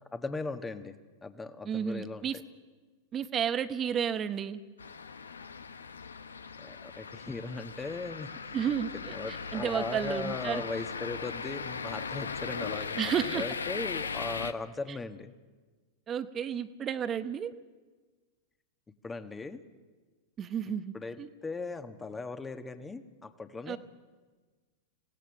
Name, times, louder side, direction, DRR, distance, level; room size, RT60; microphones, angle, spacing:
voice 1, 0.1-0.9 1.2-2.4 6.6-8.3 8.9-15.3 19.0-19.6 20.9-23.8, left 3 dB, 15° left, 9 dB, 1.3 m, -38 dB
voice 2, 1.6-2.4 3.1-4.6 8.5-10.6 13.0-13.4 16.1-17.5 20.4-21.3 23.7-23.8, right 8 dB, 30° right, 11 dB, 0.9 m, -32 dB
sound 1, 4.8-14.5, left 5 dB, 90° left, 0.7 m, -38 dB
26.0 x 17.0 x 6.4 m, 1.4 s
hypercardioid pair, 100°, 0 cm